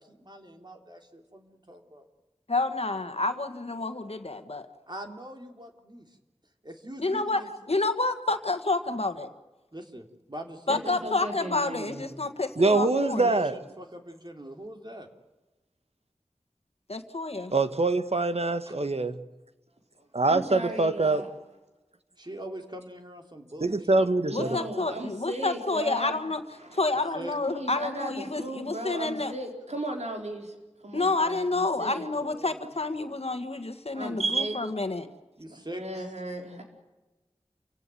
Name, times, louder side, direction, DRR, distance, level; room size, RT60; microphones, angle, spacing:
voice 1, 0.0-2.1 4.9-6.2 6.6-7.5 9.7-11.1 13.0-15.1 18.6-18.7 20.2-20.6 22.2-24.1 27.1-27.4 35.4-36.0, right 1 dB, 40° right, 3.4 m, -43 dB
voice 2, 2.5-4.7 7.0-7.4 7.7-9.3 10.7-13.3 16.9-17.5 24.3-26.4 26.7-29.3 30.9-35.1, left 3 dB, 65° left, 1.6 m, -29 dB
voice 3, 10.7-12.1 20.0-21.3 24.3-26.2 26.6-26.8 27.5-32.6 33.9-34.6 35.5-36.6, right 1 dB, 90° right, 4.5 m, -37 dB
voice 4, 12.6-13.6 17.5-19.2 20.1-21.2 23.6-24.6 34.2-34.6, right 3 dB, 65° right, 1.5 m, -24 dB
28.5 x 17.0 x 9.2 m
wide cardioid pair, 50°, 11 cm